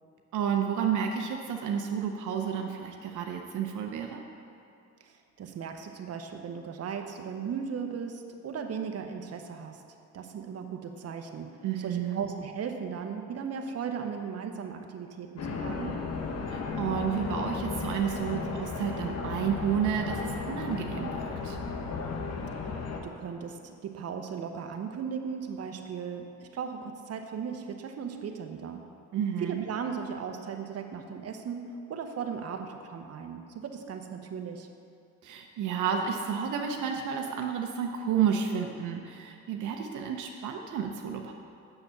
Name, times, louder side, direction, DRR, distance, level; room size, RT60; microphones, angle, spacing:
voice 1, 0.3-4.2 11.6-12.2 16.5-21.6 29.1-29.6 35.2-41.3, right 8 dB, 80° right, 3 dB, 0.8 m, -31 dB
voice 2, 5.0-9.8 10.1-16.0 23.0-28.9 29.4-31.6 31.9-34.7, right 6 dB, 55° right, 4 dB, 1.0 m, -37 dB
sound 1, 15.4-23.0, left 4 dB, 60° left, 1.2 m, -34 dB
7.1 x 6.8 x 6.9 m, 2.7 s
cardioid pair, 90°, 30 cm